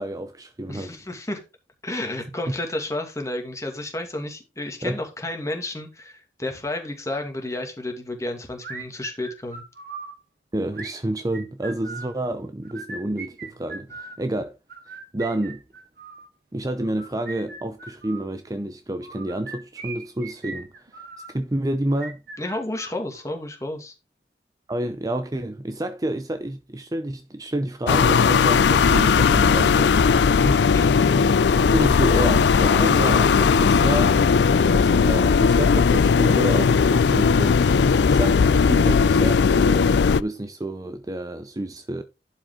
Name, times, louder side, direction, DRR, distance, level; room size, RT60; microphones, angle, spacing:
voice 1, 0.0-0.9 4.8-5.0 10.5-14.6 15.1-15.6 16.5-20.7 21.3-22.2 24.7-30.8 31.7-34.2 34.7-37.6 38.0-42.0, right 1 dB, 20° right, 0.6 m, -29 dB
voice 2, 0.7-1.4 1.8-9.6 22.4-23.9 30.6-30.9, left 1 dB, 20° left, 2.2 m, -31 dB
sound 1, 8.6-10.1 10.7-12.1 12.6-14.2 14.7-16.3 16.8-18.3 19.0-21.3 21.9-23.4, right 4 dB, 60° right, 1.9 m, -39 dB
sound 2, 27.9-40.2, left 5 dB, 75° left, 0.4 m, -18 dB
11.5 x 5.1 x 3.7 m
head